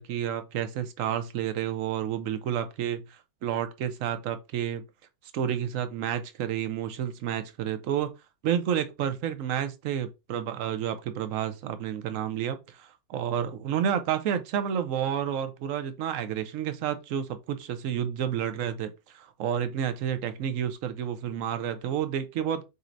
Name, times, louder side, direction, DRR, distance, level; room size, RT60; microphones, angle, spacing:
voice 1, 0.0-4.8 5.3-8.1 8.4-22.6, right 9 dB, 65° right, 0.9 m, -30 dB
6.6 x 3.1 x 2.6 m
omnidirectional pair, 1.8 m